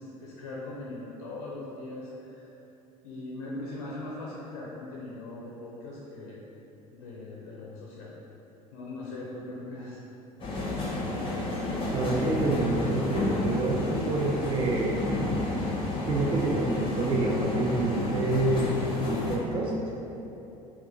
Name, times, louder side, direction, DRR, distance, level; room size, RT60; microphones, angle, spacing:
voice 1, 0.0-2.5 3.0-6.4 6.9-8.1 8.7-10.0, left 2 dB, 70° left, -5 dB, 0.5 m, -40 dB
sound 1, 10.4-19.4, left 2 dB, 25° left, 0.6 m, -30 dB
voice 2, 11.9-15.0 16.1-18.7 19.1-19.8, right 2 dB, 25° right, -2 dB, 0.4 m, -27 dB
2.6 x 2.3 x 3.5 m, 3.0 s
figure-of-eight pair, 65°, 20 cm